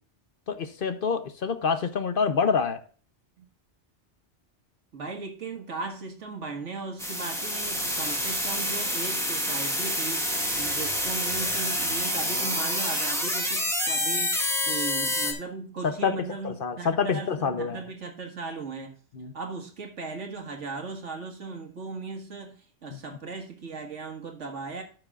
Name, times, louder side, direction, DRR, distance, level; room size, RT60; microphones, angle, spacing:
voice 1, 0.5-2.8 15.8-16.2 16.4-17.8 19.1-19.3 22.9-23.0, left 5 dB, 55° left, 0.9 m, -27 dB
voice 2, 4.9-18.9 19.3-24.8, right 4 dB, 85° right, 1.9 m, -37 dB
sound 1, 7.0-15.3, left 1 dB, ahead, 1.8 m, -28 dB
14.0 x 6.5 x 2.4 m
omnidirectional pair, 1.2 m